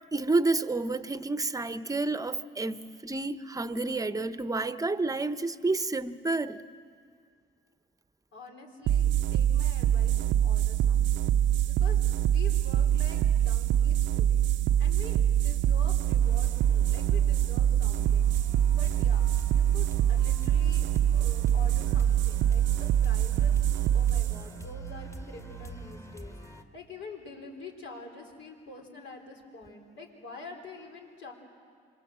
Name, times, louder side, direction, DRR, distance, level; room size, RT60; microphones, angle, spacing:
voice 1, 0.1-6.6, right 3 dB, 15° right, 12 dB, 0.9 m, -30 dB
voice 2, 8.3-14.5 14.8-18.3 18.7-23.6 23.9-31.3, left 3 dB, 70° left, 2 dB, 4.3 m, -47 dB
sound 1, 8.9-25.9, right 10 dB, 75° right, 0.6 m, -25 dB
sound 2, 16.2-26.6, left 1 dB, 15° left, 1.6 m, -45 dB
27.0 x 24.0 x 7.6 m, 2.2 s
cardioid pair, 90°, 20 cm